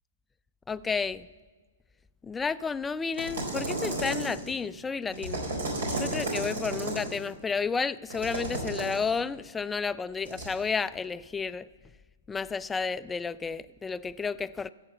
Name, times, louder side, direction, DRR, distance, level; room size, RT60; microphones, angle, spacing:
voice 1, 0.7-1.3 2.2-5.4 5.9-11.7 12.3-14.7, left 5 dB, 10° left, 0.3 m, -31 dB
sound 1, 3.1-4.5 5.1-7.2 8.1-9.0 10.2-10.5, right 2 dB, 75° right, 4.1 m, -33 dB
14.0 x 8.0 x 7.0 m
hypercardioid pair, 125°, 0 cm